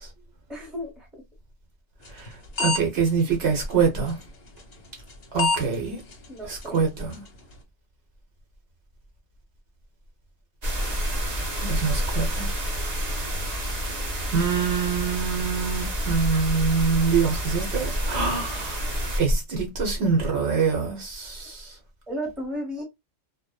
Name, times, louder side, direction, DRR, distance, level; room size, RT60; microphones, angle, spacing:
voice 1, 0.5-1.1 6.3-6.8 22.1-22.8, equal, ahead, 0.8 m, -33 dB
sound 1, 2.1-2.3 2.6-2.8 3.1-3.2 4.1-4.2 5.1-5.2 5.4-5.6 6.1-6.2 6.6-6.7 7.1-7.2, left 4 dB, 45° left, 0.7 m, -24 dB
voice 2, 2.6-4.2 5.3-6.0 6.5-7.2 11.6-12.5 14.3-18.8 19.2-21.7, right 5 dB, 65° right, 1.0 m, -25 dB
sound 2, 10.6-19.2, equal, 45° right, 0.7 m, -28 dB
2.7 x 2.1 x 2.2 m
omnidirectional pair, 1.2 m